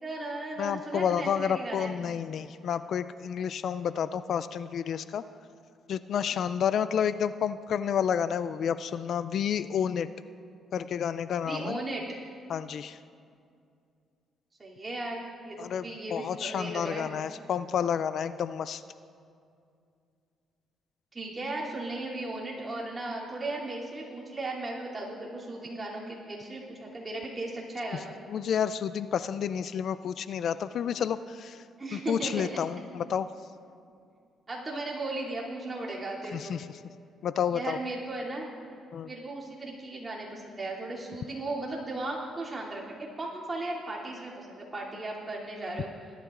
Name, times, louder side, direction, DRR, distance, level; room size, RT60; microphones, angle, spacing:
voice 1, 0.0-1.9 6.3-6.4 11.4-12.0 14.6-17.1 21.1-28.2 31.8-32.5 34.5-36.6 37.5-38.5 39.0-45.9, right 2 dB, 25° right, -4 dB, 2.9 m, -36 dB
voice 2, 0.6-5.2 5.9-10.1 10.7-11.8 12.5-13.0 15.6-18.8 28.3-31.6 31.9-33.3 36.3-36.7 37.2-37.8 38.9-39.1, left 8 dB, 65° left, 14 dB, 0.3 m, -30 dB
19.5 x 12.0 x 2.5 m, 2.4 s
cardioid pair, 90°, 0 cm